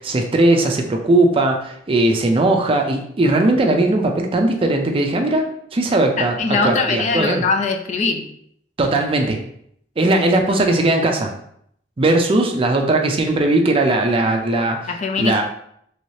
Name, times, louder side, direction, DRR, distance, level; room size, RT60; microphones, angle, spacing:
voice 1, 0.0-5.4 5.7-7.4 8.8-9.4 10.0-11.3 12.0-14.9 15.2-15.4, right 2 dB, 30° right, 3 dB, 0.4 m, -18 dB
voice 2, 6.2-8.3 14.9-15.4, left 4 dB, 40° left, 5 dB, 0.4 m, -21 dB
3.1 x 2.7 x 3.1 m, 0.69 s
head